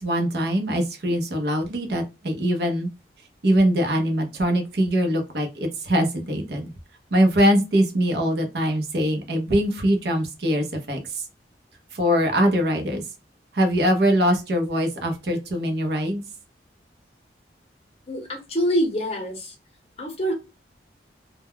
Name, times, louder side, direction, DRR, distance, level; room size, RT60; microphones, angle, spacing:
voice 1, 0.0-2.9 3.4-6.7 7.1-11.2 11.9-13.0 13.5-16.2, equal, 60° right, 4 dB, 0.6 m, -22 dB
voice 2, 18.1-19.5 20.0-20.3, equal, 35° left, 2 dB, 0.8 m, -25 dB
2.2 x 2.1 x 3.5 m, 0.27 s
head